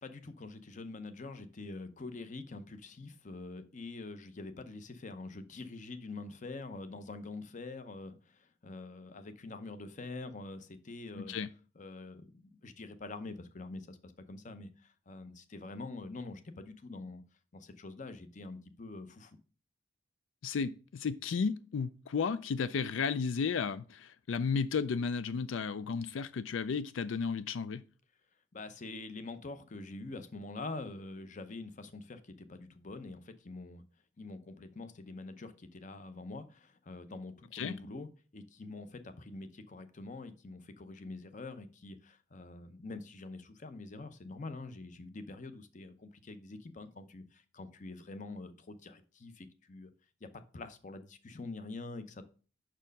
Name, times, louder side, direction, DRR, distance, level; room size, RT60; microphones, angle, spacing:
voice 1, 0.0-11.4 11.8-17.2 17.5-19.4 28.5-33.8 34.2-49.9 50.2-50.3 50.5-52.2, left 3 dB, 40° left, 0.7 m, -45 dB
voice 2, 11.1-11.5 20.4-27.8 37.5-37.7, left 5 dB, 85° left, 0.4 m, -33 dB
6.2 x 4.5 x 5.2 m
head